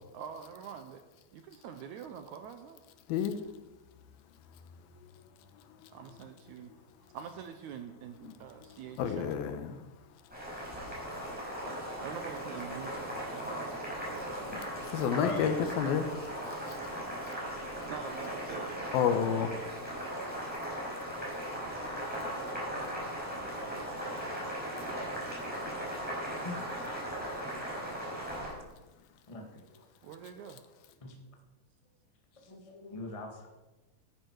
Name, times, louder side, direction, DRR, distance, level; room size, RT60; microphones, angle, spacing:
voice 1, 0.1-1.0 1.3-2.8 5.9-6.7 7.1-9.4 12.0-13.6 14.1-14.8 17.9-19.7 27.4-28.8 30.0-30.6, right 7 dB, 75° right, 7 dB, 1.8 m, -46 dB
voice 2, 9.0-9.8 11.7-11.8 14.5-16.1 16.7-16.9 18.9-19.5, left 8 dB, 90° left, 9 dB, 2.9 m, -30 dB
Boiling, 10.3-28.5, equal, ahead, 5.4 m, -38 dB
voice 3, 15.2-15.5 24.6-24.9 26.4-26.8 29.3-29.8 31.0-31.2 32.3-33.5, left 2 dB, 50° left, 2 dB, 0.4 m, -42 dB
14.5 x 11.5 x 4.6 m, 1.1 s
omnidirectional pair, 4.2 m